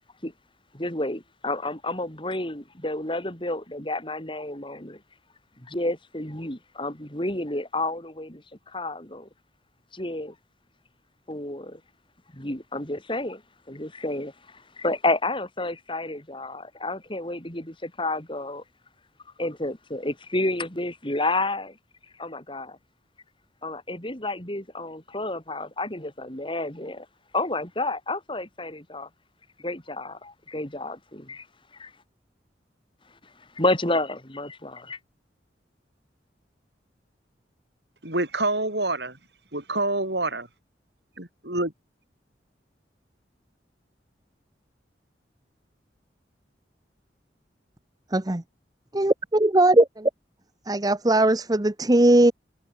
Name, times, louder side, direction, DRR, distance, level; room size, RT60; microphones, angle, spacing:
voice 1, 0.7-5.0 5.6-9.3 9.9-10.3 11.3-11.8 12.3-13.4 13.7-18.6 19.4-21.8 22.2-22.8 23.6-27.0 27.3-29.1 29.6-31.4 31.8-31.9 33.5-35.0, left 2 dB, 30° left, 5.3 m, -30 dB
voice 2, 38.0-39.2 39.5-40.5 41.2-41.7, right 2 dB, 65° right, 7.8 m, -27 dB
voice 3, 48.9-50.1 50.7-52.3, right 1 dB, 20° right, 0.9 m, -19 dB
head